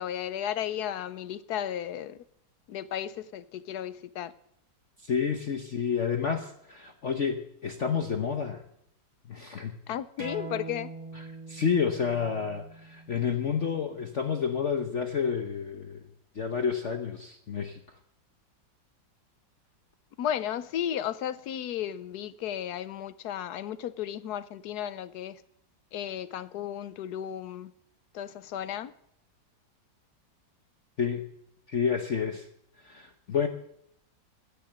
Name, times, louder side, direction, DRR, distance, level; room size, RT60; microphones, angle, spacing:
voice 1, 0.0-2.2 2.7-4.3 9.9-10.9 20.2-25.4 25.9-27.7 28.1-28.9, left 10 dB, 65° left, 1.1 m, -34 dB
voice 2, 5.0-8.6 9.3-9.8 11.1-16.1 16.3-18.0 31.0-31.3 31.7-32.5 32.8-33.5, left 6 dB, 50° left, 1.0 m, -30 dB
sound 1, 10.2-15.4, right 2 dB, 55° right, 5.6 m, -44 dB
15.5 x 7.0 x 8.9 m
omnidirectional pair, 2.1 m